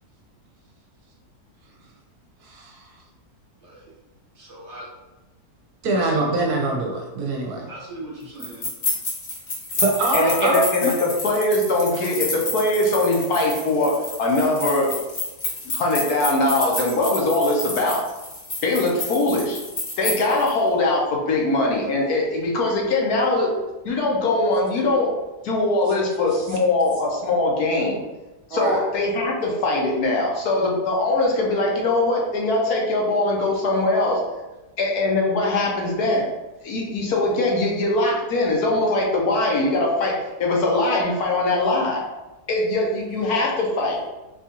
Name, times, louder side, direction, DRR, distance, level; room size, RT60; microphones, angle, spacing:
voice 1, 2.4-2.9 5.8-7.7 9.8-10.9 11.9-12.0 28.5-28.8, right 2 dB, 75° right, 0 dB, 1.1 m, -24 dB
voice 2, 3.6-3.9 4.3-4.9 5.9-6.2 7.7-8.7, right 1 dB, 50° right, -5 dB, 1.2 m, -39 dB
sound 1, 8.4-20.5, left 2 dB, 40° left, 0.7 m, -30 dB
voice 3, 10.1-14.9 15.7-18.0 18.6-19.6 20.0-23.5 23.8-25.1 25.4-28.0 28.5-34.2 34.8-36.3 36.6-42.0 42.5-44.0, left 2 dB, 70° left, -1 dB, 1.3 m, -21 dB
4.3 x 2.4 x 2.9 m, 1.1 s
omnidirectional pair, 1.7 m